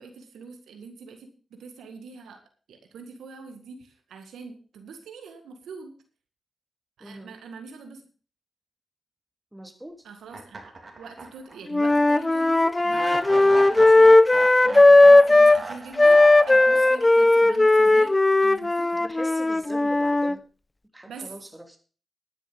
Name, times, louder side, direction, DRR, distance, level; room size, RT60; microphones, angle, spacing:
voice 1, 0.0-2.4 2.7-5.9 7.0-8.0 10.0-10.7 11.0-19.0 21.1-21.3, right 5 dB, 85° right, 6 dB, 1.8 m, -44 dB
voice 2, 7.0-7.4 9.5-10.1 16.7-16.8 19.0-20.4 20.9-21.8, right 1 dB, 15° right, 5 dB, 3.1 m, -41 dB
sound 1, 10.3-11.6 11.9-12.0 12.9-17.2, right 3 dB, 50° right, 3.2 m, -37 dB
Wind instrument woodwind instrument, 11.7-15.6 16.0-20.3, left 2 dB, 25° left, 0.6 m, -17 dB
11.0 x 9.9 x 5.3 m, 0.38 s
supercardioid pair, 45°, 0 cm